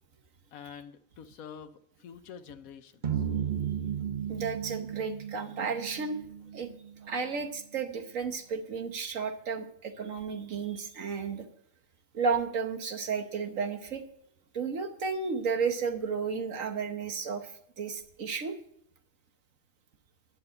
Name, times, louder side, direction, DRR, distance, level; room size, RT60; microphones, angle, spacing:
voice 1, 0.5-3.2, left 7 dB, 80° left, 11 dB, 1.2 m, -47 dB
sound 1, 3.0-7.4, right 9 dB, 40° right, 1.0 m, -35 dB
voice 2, 4.3-6.2 6.5-6.7 7.0-11.5 12.1-14.0 14.5-18.6, right 5 dB, 70° right, 7 dB, 1.6 m, -33 dB
11.0 x 6.8 x 7.8 m, 0.69 s
omnidirectional pair, 1.4 m